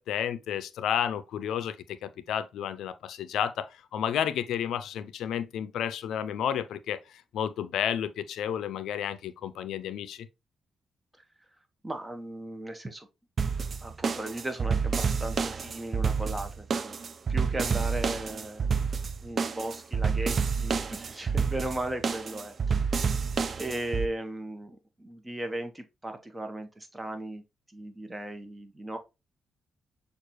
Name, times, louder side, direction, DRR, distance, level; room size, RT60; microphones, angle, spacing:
voice 1, 0.0-10.3, left 9 dB, 85° left, 0.4 m, -31 dB
voice 2, 11.8-13.1 13.8-17.0 17.3-18.9 19.2-22.8 23.6-27.4 27.7-29.0, right 1 dB, 20° right, 1.0 m, -37 dB
sound 1, 13.4-24.1, right 5 dB, 50° right, 0.4 m, -29 dB
6.4 x 2.4 x 3.0 m
cardioid pair, 65°, 0 cm